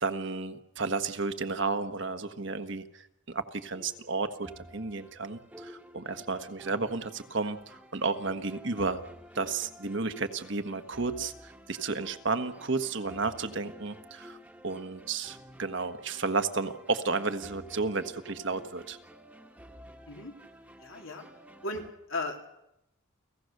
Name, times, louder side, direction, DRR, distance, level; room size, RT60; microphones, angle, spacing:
voice 1, 0.0-9.0 9.3-14.4 14.6-19.0, right 4 dB, 60° right, 8 dB, 1.4 m, -32 dB
sound 1, 3.7-21.9, equal, 5° right, 1.5 m, -51 dB
voice 2, 20.8-21.2 21.6-21.8 22.1-22.5, left 2 dB, 70° left, 2 dB, 3.3 m, -35 dB
30.0 x 17.5 x 6.6 m, 0.84 s
head